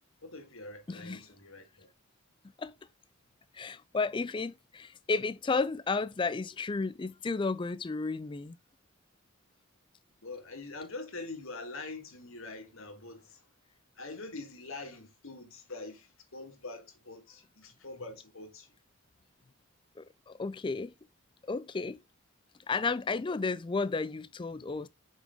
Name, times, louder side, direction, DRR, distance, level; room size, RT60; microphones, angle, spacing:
voice 1, 0.2-1.9 10.2-13.5 13.9-18.7, left 3 dB, 70° left, 1.8 m, -44 dB
voice 2, 0.9-1.2 2.6-2.7 3.5-8.6 20.0-20.9 21.4-22.0 22.7-24.9, left 4 dB, 20° left, 0.3 m, -33 dB
6.2 x 5.1 x 3.6 m
head